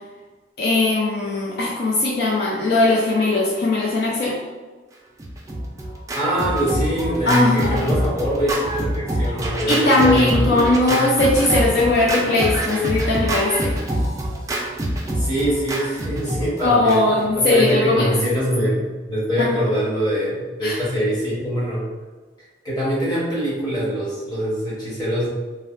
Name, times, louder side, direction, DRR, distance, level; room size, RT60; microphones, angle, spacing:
voice 1, 0.6-4.4 7.3-7.8 9.7-13.8 16.6-18.1 19.4-19.5 20.6-20.8, left 2 dB, 65° left, -3 dB, 0.4 m, -19 dB
Scratching (performance technique), 5.2-17.3, right 1 dB, 20° right, 0.3 m, -25 dB
voice 2, 6.1-11.0 15.1-17.0 17.3-21.9 22.6-25.3, equal, 25° left, -7 dB, 1.0 m, -23 dB
3.2 x 2.1 x 2.5 m, 1.3 s
head